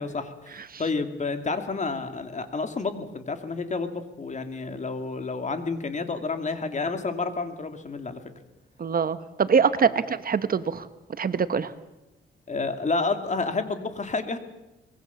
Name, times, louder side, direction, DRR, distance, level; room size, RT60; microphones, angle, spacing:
voice 1, 0.0-8.2 12.5-14.4, left 3 dB, 35° left, 8 dB, 2.6 m, -30 dB
voice 2, 8.8-10.9 11.2-11.7, right 6 dB, 45° right, 13 dB, 1.1 m, -24 dB
23.5 x 21.5 x 7.1 m, 0.97 s
cardioid pair, 105°, 21 cm